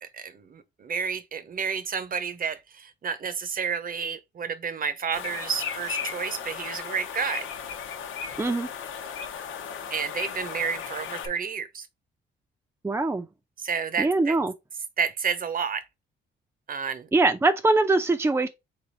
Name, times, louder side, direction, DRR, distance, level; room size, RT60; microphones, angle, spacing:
voice 1, 0.0-7.5 9.9-11.9 13.6-14.4 15.0-15.8 16.7-17.1, right 6 dB, 45° right, 0.9 m, -30 dB
sound 1, 5.1-11.3, left 7 dB, 85° left, 1.0 m, -36 dB
voice 2, 8.4-8.7 12.8-13.3 14.0-14.5 17.1-18.5, right 2 dB, 10° right, 0.6 m, -22 dB
3.9 x 3.5 x 3.9 m
cardioid pair, 90°, 20 cm